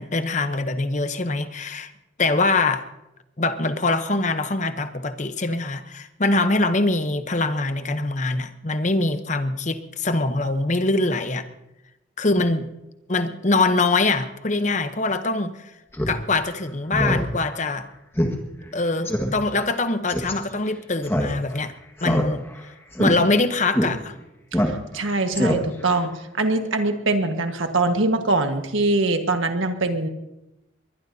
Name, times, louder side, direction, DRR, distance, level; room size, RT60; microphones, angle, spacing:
voice 1, 0.0-1.9 2.2-2.9 3.4-11.5 12.2-12.7 13.1-15.7 16.1-17.9 18.7-21.7 22.0-22.4 23.0-24.1, left 2 dB, 35° left, 10 dB, 0.9 m, -23 dB
Speech synthesizer, 15.9-16.2 16.5-16.6 16.9-17.2 17.6-17.7 18.2-18.3 18.6-18.7 19.1-19.3 20.1-20.3 21.0-21.6 22.0-22.6 22.9-23.1 23.7-23.9 24.5-25.0 25.3-25.9, equal, 10° left, 1.7 m, -22 dB
voice 2, 24.5-26.1 26.4-30.1, right 2 dB, 80° right, 6 dB, 1.6 m, -23 dB
22.0 x 20.5 x 2.8 m, 0.93 s
head